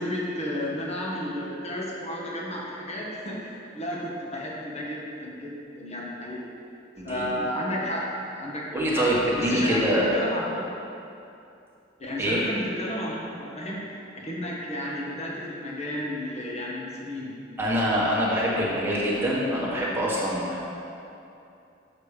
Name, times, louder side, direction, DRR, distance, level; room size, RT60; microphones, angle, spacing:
voice 1, 0.0-6.4 7.0-9.1 9.4-9.8 10.1-10.6 12.0-13.9 14.1-17.3, left 1 dB, 40° left, -4 dB, 1.5 m, -32 dB
voice 2, 7.0-7.3 8.7-10.1 12.2-12.4 17.6-20.6, equal, 15° right, -6 dB, 1.6 m, -25 dB
6.7 x 6.6 x 5.0 m, 2.7 s
head